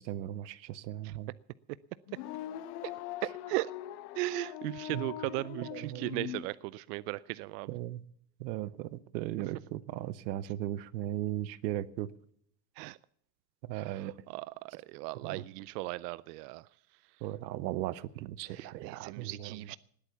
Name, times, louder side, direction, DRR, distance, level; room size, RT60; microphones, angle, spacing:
voice 1, 0.0-1.3 4.9-5.1 5.7-6.3 7.7-8.0 8.4-12.1 13.6-14.1 15.2-15.4 17.2-19.6, right 13 dB, 90° right, 1.0 m, -37 dB
sound 1, 2.1-6.4, left 12 dB, 65° left, 1.2 m, -42 dB
voice 2, 3.2-3.7 4.2-7.7 12.8-13.0 13.7-16.6 18.5-19.8, right 20 dB, 70° right, 0.6 m, -37 dB
19.5 x 8.5 x 7.0 m
supercardioid pair, 145°, 50 cm